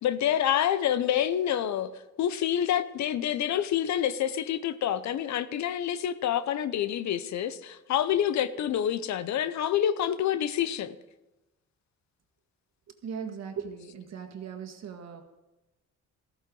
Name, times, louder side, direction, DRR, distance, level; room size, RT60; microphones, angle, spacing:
voice 1, 0.0-1.9 2.2-11.0, left 10 dB, 65° left, 0.7 m, -27 dB
voice 2, 13.0-15.2, right 7 dB, 60° right, 1.8 m, -38 dB
14.0 x 13.5 x 3.9 m
cardioid pair, 90°, 30 cm